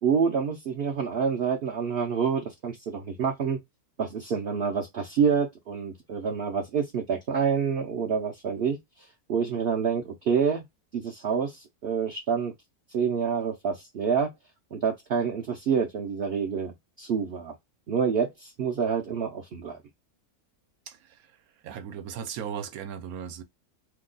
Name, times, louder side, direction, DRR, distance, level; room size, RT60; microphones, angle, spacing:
voice 1, 0.0-3.6 4.0-8.8 9.3-10.6 10.9-12.5 12.9-14.3 14.7-17.5 17.9-19.8, right 6 dB, 60° right, 0.7 m, -27 dB
voice 2, 20.9-21.2 21.6-23.4, right 8 dB, 75° right, 1.1 m, -37 dB
2.9 x 2.2 x 3.7 m
omnidirectional pair, 1.6 m